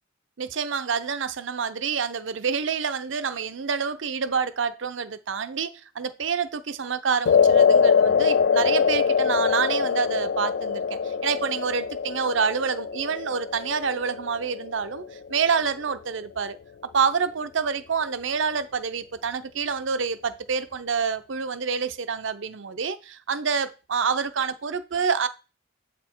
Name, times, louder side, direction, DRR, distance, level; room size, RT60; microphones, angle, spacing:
voice 1, 0.4-15.0 15.3-16.6 16.9-25.3, right 6 dB, 65° right, 0.6 m, -27 dB
sound 1, 7.2-15.6, left 6 dB, 55° left, 0.3 m, -23 dB
8.0 x 4.2 x 4.5 m
head